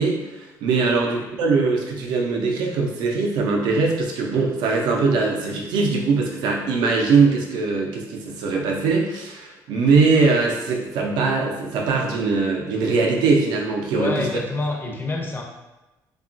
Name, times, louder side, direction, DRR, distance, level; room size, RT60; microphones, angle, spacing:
voice 1, 0.0-14.3, right 4 dB, 85° right, 0 dB, 0.5 m, -21 dB
voice 2, 14.0-15.4, left 2 dB, 30° left, 0 dB, 0.5 m, -27 dB
2.8 x 2.3 x 2.5 m, 1.0 s
cardioid pair, 100°, 7 cm